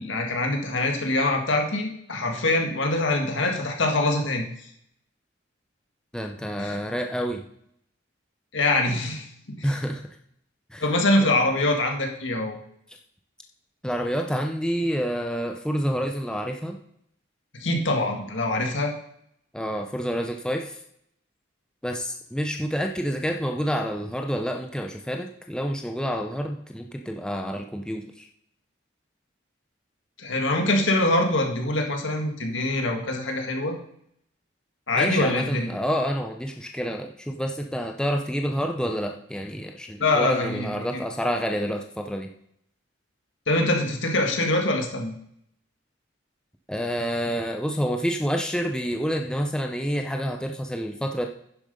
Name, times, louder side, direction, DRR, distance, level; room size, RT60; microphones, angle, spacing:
voice 1, 0.0-4.5 6.6-6.8 8.5-9.7 10.8-12.6 17.6-18.9 30.2-33.8 34.9-35.7 40.0-41.0 43.5-45.1, left 2 dB, 75° left, 2 dB, 1.9 m, -24 dB
voice 2, 6.1-7.4 9.6-10.0 10.7-10.9 11.2-11.3 13.8-16.8 19.5-20.8 21.8-28.3 34.9-42.3 46.7-51.3, equal, 5° left, 3 dB, 0.6 m, -28 dB
10.0 x 7.2 x 5.4 m, 0.72 s
head